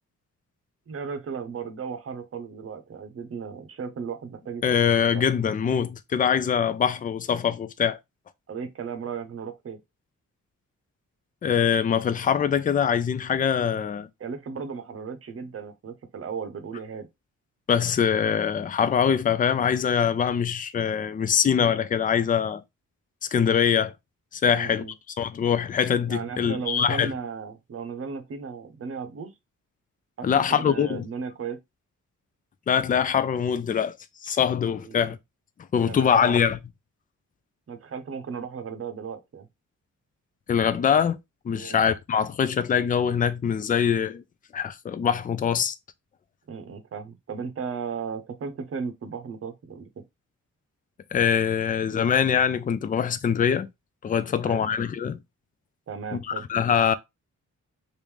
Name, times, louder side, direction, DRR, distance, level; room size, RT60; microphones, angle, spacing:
voice 1, 0.9-5.2 8.5-9.8 14.2-17.1 24.5-24.9 26.0-29.3 30.2-31.6 34.9-35.1 35.8-36.4 37.7-39.5 41.5-41.8 46.5-50.0 54.3-54.6 55.9-56.4, right 6 dB, 45° right, 0.8 m, -35 dB
voice 2, 4.6-8.0 11.4-14.1 17.7-22.6 23.3-23.9 24.3-24.9 25.2-27.1 30.2-31.1 32.7-34.0 34.2-35.2 35.7-36.6 40.5-41.2 41.4-44.2 44.5-45.7 51.1-53.7 54.0-55.2 56.1-56.9, left 7 dB, 25° left, 0.3 m, -23 dB
3.0 x 2.6 x 3.5 m
wide cardioid pair, 125°, 31 cm